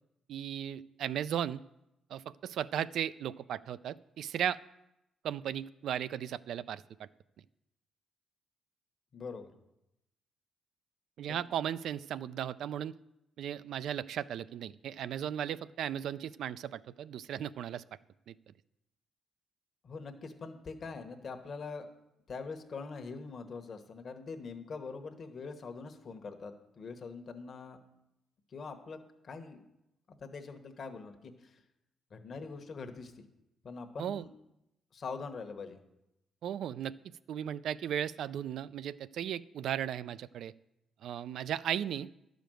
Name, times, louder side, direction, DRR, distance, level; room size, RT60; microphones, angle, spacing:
voice 1, 0.3-1.6 2.1-4.6 5.2-7.1 11.2-12.9 13.4-17.8 18.3-18.4 34.0-34.2 36.4-37.0 37.3-40.5 41.0-42.1, right 10 dB, 70° right, 16 dB, 0.3 m, -36 dB
voice 2, 9.1-9.5 11.3-11.4 19.8-21.9 22.3-27.8 28.5-29.0 29.2-29.6 30.2-31.6 32.1-33.2 33.6-34.3 34.9-35.8, left 4 dB, 45° left, 6 dB, 1.1 m, -43 dB
11.5 x 5.1 x 7.6 m, 0.87 s
cardioid pair, 115°, 0 cm